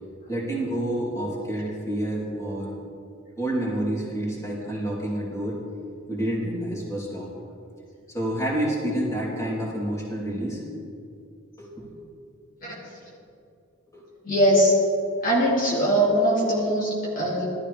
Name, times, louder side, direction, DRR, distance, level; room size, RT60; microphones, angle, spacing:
voice 1, 0.3-2.7 3.4-5.6 6.1-7.3 8.1-10.6 11.6-11.9 13.9-14.0, right 1 dB, 15° left, -5 dB, 3.3 m, -28 dB
voice 2, 14.2-14.7 15.2-17.5, equal, 45° left, -6 dB, 2.6 m, -21 dB
18.5 x 13.0 x 3.4 m, 2.5 s
head